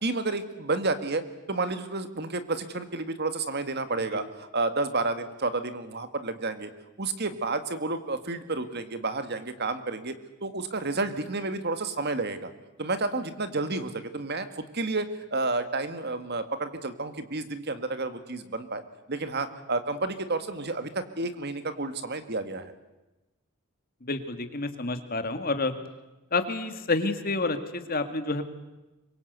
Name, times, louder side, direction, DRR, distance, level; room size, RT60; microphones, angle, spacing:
voice 1, 0.0-1.2 1.5-6.7 7.0-10.1 10.4-12.5 12.8-18.8 19.1-22.7, right 3 dB, 50° right, 10 dB, 1.9 m, -30 dB
voice 2, 24.0-25.7 26.3-28.4, left 3 dB, 40° left, 8 dB, 2.2 m, -29 dB
26.0 x 23.5 x 8.2 m, 1.0 s
head